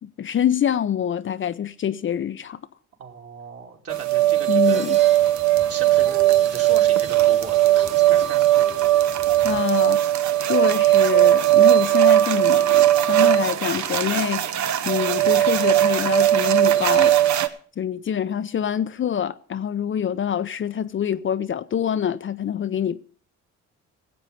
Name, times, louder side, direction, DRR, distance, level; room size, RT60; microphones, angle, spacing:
voice 1, 0.0-2.6 4.5-5.0 9.4-10.0 10.4-17.2 17.8-23.0, left 9 dB, 40° left, 0.5 m, -25 dB
voice 2, 3.0-4.9 5.7-8.6, right 5 dB, 50° right, 2.8 m, -37 dB
sound 1, 3.9-17.5, right 14 dB, 70° right, 0.9 m, -18 dB
sound 2, 4.6-9.6, right 4 dB, 20° right, 1.5 m, -41 dB
16.5 x 7.8 x 5.6 m
cardioid pair, 90°, 30 cm